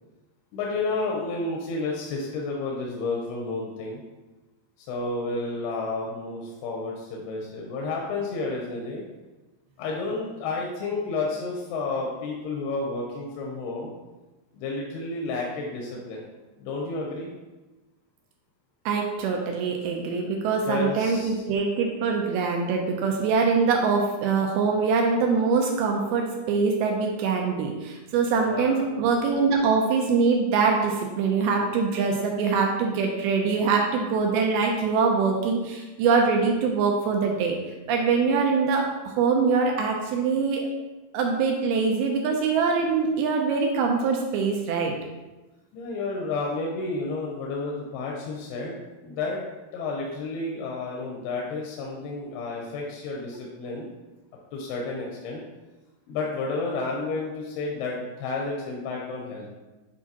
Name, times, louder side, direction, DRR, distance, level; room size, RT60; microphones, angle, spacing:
voice 1, 0.5-4.0 4.9-9.0 9.8-13.9 14.5-16.2 16.6-17.3 20.7-21.4 28.4-28.9 45.7-48.7 49.0-49.4 49.7-53.9 54.5-55.4 56.1-59.5, left 3 dB, 90° left, -1 dB, 2.7 m, -31 dB
voice 2, 18.9-37.6 37.9-40.7 41.1-45.0, right 5 dB, 80° right, 1 dB, 2.5 m, -23 dB
8.0 x 4.6 x 2.9 m, 1.1 s
omnidirectional pair, 4.6 m